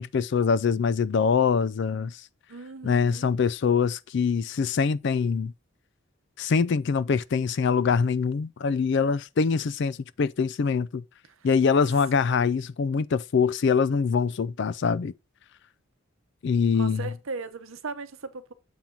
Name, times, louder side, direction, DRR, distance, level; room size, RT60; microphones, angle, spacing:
voice 1, 0.0-2.2 2.8-5.5 6.4-11.0 11.4-15.1 16.4-17.0, left 5 dB, 55° left, 0.3 m, -24 dB
voice 2, 2.5-3.3 11.4-11.5 16.7-18.5, right 4 dB, 70° right, 0.8 m, -38 dB
7.2 x 3.8 x 4.3 m
head